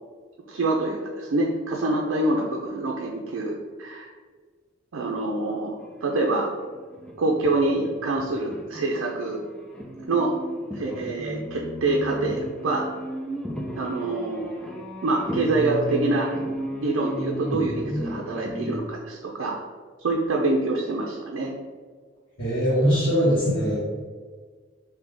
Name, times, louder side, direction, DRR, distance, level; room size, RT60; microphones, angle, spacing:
voice 1, 0.5-4.1 4.9-6.5 7.2-9.4 10.1-10.3 10.7-12.8 13.8-14.5 15.0-16.3 16.6-19.5 20.0-21.5, right 2 dB, 85° right, -1 dB, 0.5 m, -26 dB
sound 1, 5.8-8.9 9.2-18.8, equal, 5° left, 0.3 m, -34 dB
voice 2, 22.4-23.8, equal, 60° left, -13 dB, 1.4 m, -21 dB
3.7 x 2.8 x 3.3 m, 1.5 s
head